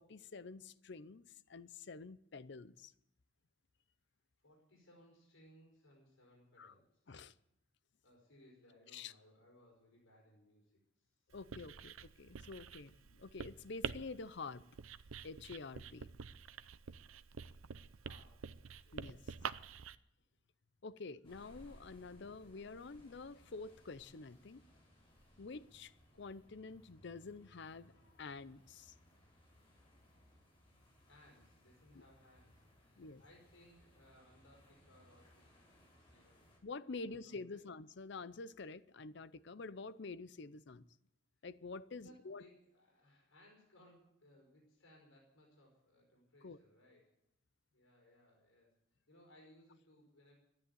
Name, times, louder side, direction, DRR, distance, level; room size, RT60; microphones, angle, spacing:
voice 1, 0.0-2.9 6.6-6.7 7.1-7.3 8.9-9.1 11.3-14.6 15.2-16.1 18.9-19.3 20.8-24.6 25.4-28.9 31.9-32.0 33.0-33.2 36.6-40.8 41.4-42.4 46.4-46.6, left 4 dB, 60° left, 0.6 m, -48 dB
voice 2, 4.4-7.0 8.0-11.2 18.0-19.7 31.1-35.5 36.1-36.5 36.9-37.6 41.4-41.5 41.9-47.1 47.7-48.7 49.1-50.3, left 1 dB, 85° left, 5.1 m, -65 dB
Writing, 11.3-20.0, right 6 dB, 85° right, 0.6 m, -47 dB
sound 1, 21.2-36.6, equal, 25° left, 4.8 m, -65 dB
13.0 x 11.0 x 9.3 m
head